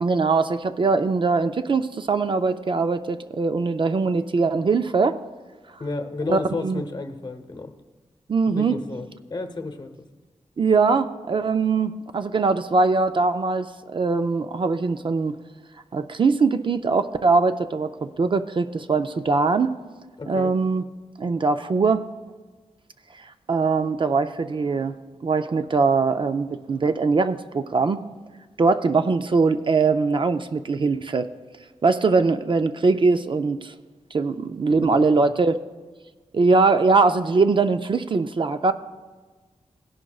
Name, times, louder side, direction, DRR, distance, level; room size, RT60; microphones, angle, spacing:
voice 1, 0.0-5.2 6.3-6.8 8.3-8.7 10.6-15.4 15.9-19.7 20.3-20.8 21.2-22.1 23.5-24.9 25.2-28.0 28.6-31.3 31.8-33.7 34.1-35.6 36.3-38.7, right 4 dB, 40° right, 9 dB, 0.4 m, -21 dB
voice 2, 5.8-7.7 8.5-9.9 20.2-20.5 34.7-35.4, left 3 dB, 35° left, 7 dB, 0.9 m, -32 dB
18.0 x 11.0 x 2.3 m, 1.3 s
wide cardioid pair, 160°, 13 cm